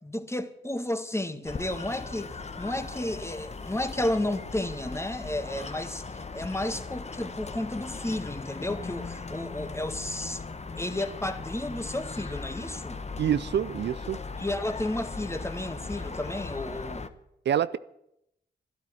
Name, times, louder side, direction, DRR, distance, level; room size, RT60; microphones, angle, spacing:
voice 1, 0.0-6.0 6.3-10.4 10.8-13.0 14.4-17.1, left 1 dB, 15° left, 1.9 m, -32 dB
sound 1, 1.5-17.1, left 4 dB, 35° left, 1.3 m, -38 dB
voice 2, 13.2-14.2 17.5-17.8, right 9 dB, 65° right, 0.5 m, -26 dB
12.5 x 12.0 x 9.7 m
supercardioid pair, 50°, 19 cm